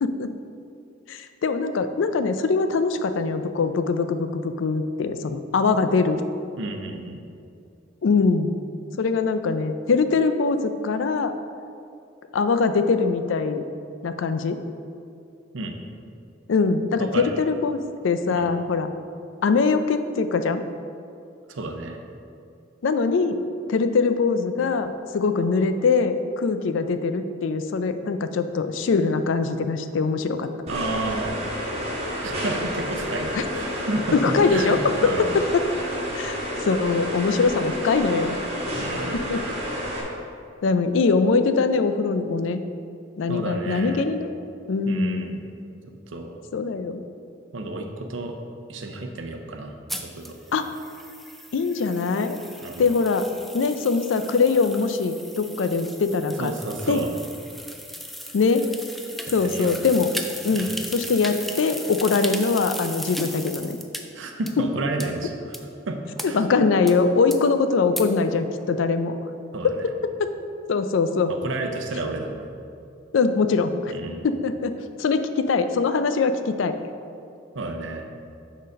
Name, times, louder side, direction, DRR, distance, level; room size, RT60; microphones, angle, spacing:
voice 1, 0.0-0.3 1.1-6.2 8.0-8.6 9.0-11.3 12.3-13.6 14.0-14.6 16.5-18.9 19.4-20.6 22.8-23.4 23.7-30.5 33.3-33.4 34.1-35.6 36.1-38.3 39.1-39.4 40.6-42.6 43.2-44.3 44.7-45.4 46.5-47.0 50.5-50.7 51.5-52.4 52.8-53.3 53.5-56.5 56.9-57.0 58.3-58.7 59.3-60.1 60.4-63.8 64.6-64.7 66.2-69.2 70.0-70.3 70.7-71.3 73.1-73.9 74.2-76.8, left 4 dB, 70° left, 9 dB, 0.4 m, -22 dB
voice 2, 6.6-7.2 15.5-15.7 17.0-17.3 18.3-18.5 21.5-22.0 30.7-31.4 32.2-34.2 34.4-35.4 38.8-39.3 43.3-44.0 44.9-45.4 46.1-46.3 47.5-48.4 48.7-49.7 50.0-50.4 52.6-52.8 56.4-57.1 59.4-59.7 60.5-60.8 64.1-65.6 65.9-66.0 66.2-66.6 69.5-69.9 71.3-72.4 73.9-74.3 77.5-78.0, right 2 dB, 70° right, 4 dB, 0.7 m, -31 dB
sound 1, 30.7-40.0, equal, 35° right, 1.3 m, -30 dB
sound 2, 49.9-64.0 64.5-64.6 65.0-65.1 65.5-65.6 66.2-66.3 66.9-67.0 67.3-67.4 68.0-68.1, equal, ahead, 0.3 m, -37 dB
6.4 x 4.0 x 5.2 m, 2.5 s
head